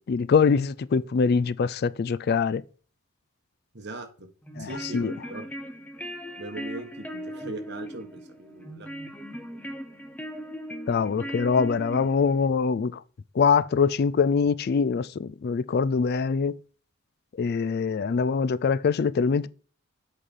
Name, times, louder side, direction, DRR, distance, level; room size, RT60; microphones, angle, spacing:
voice 1, 0.1-2.6 4.6-5.1 10.9-13.0 13.4-16.6 17.4-19.5, left 5 dB, 50° left, 0.3 m, -23 dB
voice 2, 3.7-4.1 4.6-5.4 6.4-8.9, right 2 dB, 50° right, 1.5 m, -39 dB
sound 1, 4.4-12.5, equal, 5° left, 0.8 m, -38 dB
8.0 x 4.2 x 5.4 m
head